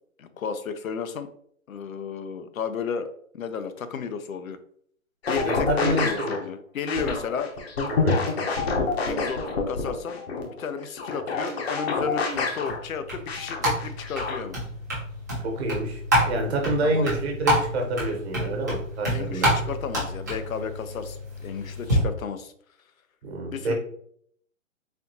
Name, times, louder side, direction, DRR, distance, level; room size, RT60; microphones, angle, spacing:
voice 1, 0.2-1.3 1.7-3.1 3.3-4.6 5.3-7.6 8.8-14.6 16.8-17.1 19.1-22.5 23.5-23.7, left 6 dB, 90° left, 10 dB, 0.6 m, -33 dB
sound 1, 5.2-6.4 6.9-12.8 13.3-14.4, left 4 dB, 50° left, 0.8 m, -27 dB
voice 2, 5.4-6.4 7.9-8.2 15.4-16.0 16.3-19.5 23.2-23.7, right 1 dB, 50° right, 2 dB, 1.2 m, -27 dB
sound 2, 12.3-22.0, equal, 15° right, 0.4 m, -28 dB
4.1 x 2.8 x 2.7 m, 0.64 s
hypercardioid pair, 155°, 40 cm